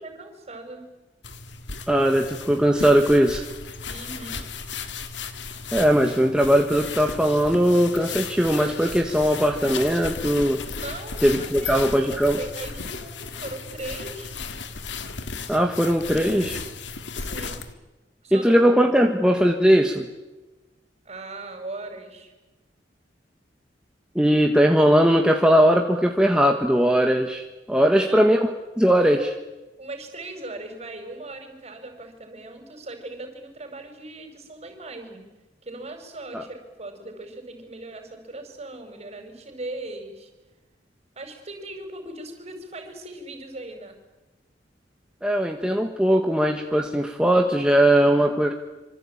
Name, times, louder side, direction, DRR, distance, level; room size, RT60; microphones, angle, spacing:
voice 1, 0.0-0.9 3.9-4.5 10.8-11.8 12.1-14.4 17.1-17.7 18.2-18.6 21.1-22.3 27.9-28.4 29.8-35.3 35.6-40.3 41.2-44.0, right 2 dB, 35° right, 6 dB, 5.2 m, -39 dB
sound 1, 1.2-17.7, left 5 dB, 90° left, 2.1 m, -35 dB
voice 2, 1.9-3.4 5.7-10.6 11.2-12.4 15.5-16.6 18.3-20.1 24.1-28.5 28.8-29.3 36.3-36.4 45.2-48.5, equal, 5° right, 2 dB, 1.5 m, -19 dB
26.0 x 25.0 x 8.8 m, 1.1 s
head